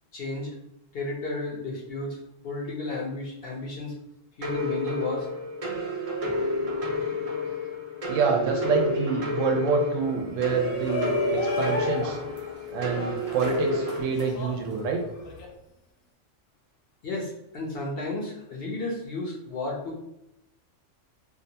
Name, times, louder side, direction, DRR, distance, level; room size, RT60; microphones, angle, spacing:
voice 1, 0.1-0.5 0.9-2.2 2.4-3.9 4.4-5.3 17.0-20.1, left 2 dB, 60° left, -2 dB, 0.7 m, -33 dB
sound 1, 4.4-14.0, left 1 dB, 45° right, 0.4 m, -30 dB
voice 2, 8.1-12.2 12.7-15.0, right 4 dB, 80° right, 3 dB, 0.9 m, -27 dB
Shout, 10.3-15.4, left 3 dB, 90° left, 1.0 m, -34 dB
2.7 x 2.2 x 2.7 m, 0.85 s
omnidirectional pair, 1.3 m